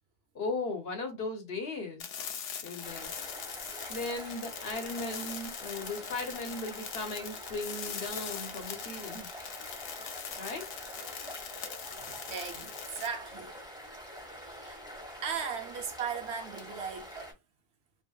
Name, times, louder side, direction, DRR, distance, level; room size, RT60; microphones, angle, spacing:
voice 1, 0.3-2.1 2.6-3.1 3.9-9.3 10.4-10.6, left 2 dB, 60° left, 1.0 m, -37 dB
sound 1, 2.0-13.1, left 7 dB, 85° left, 0.9 m, -42 dB
sound 2, 2.8-17.3, equal, 5° right, 1.1 m, -46 dB
voice 2, 3.4-4.1 11.8-14.9 15.2-17.4, right 6 dB, 70° right, 0.8 m, -39 dB
2.8 x 2.6 x 2.3 m
omnidirectional pair, 1.2 m